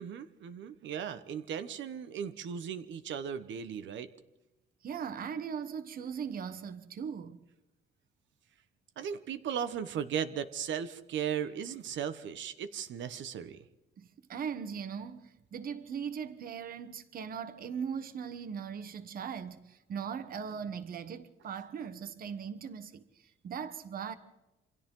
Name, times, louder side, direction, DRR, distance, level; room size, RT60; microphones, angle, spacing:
voice 1, 0.0-4.1 9.0-13.6, right 8 dB, 75° right, 1.3 m, -37 dB
voice 2, 4.8-7.4 14.0-24.1, right 7 dB, 50° right, 1.3 m, -39 dB
28.0 x 26.0 x 3.9 m
cardioid pair, 160°, 19 cm